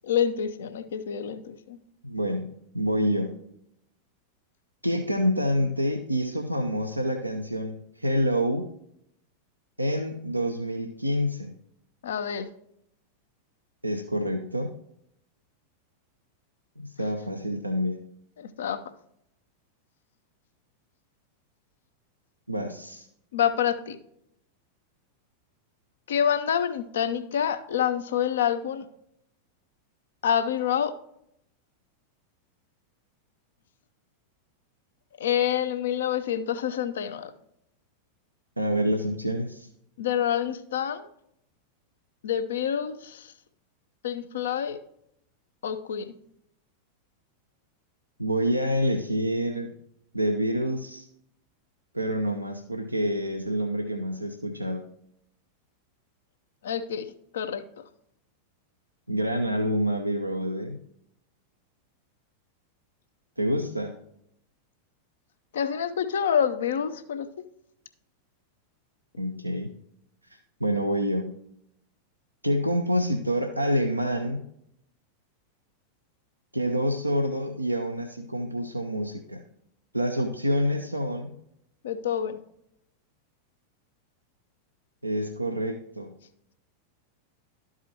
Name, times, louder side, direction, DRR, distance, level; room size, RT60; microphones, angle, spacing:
voice 1, 0.0-1.8 12.0-12.5 18.4-18.8 23.3-24.0 26.1-28.9 30.2-30.9 35.2-37.3 40.0-41.1 42.2-43.3 44.0-44.8 45.6-46.1 56.6-57.1 57.3-57.6 65.5-67.3 81.8-82.4, left 9 dB, 60° left, 9 dB, 0.6 m, -27 dB
voice 2, 2.0-2.5 2.7-3.4 4.8-8.7 9.8-11.5 13.8-14.7 16.8-18.1 22.5-23.1 38.6-39.7 48.2-49.7 50.1-51.1 51.9-54.8 59.1-60.8 63.4-63.9 69.2-69.7 70.3-71.3 72.4-74.4 76.5-79.4 79.9-81.3 85.0-86.1, equal, 85° right, 3 dB, 0.6 m, -27 dB
12.5 x 4.9 x 2.8 m, 0.74 s
figure-of-eight pair, 90°, 0 cm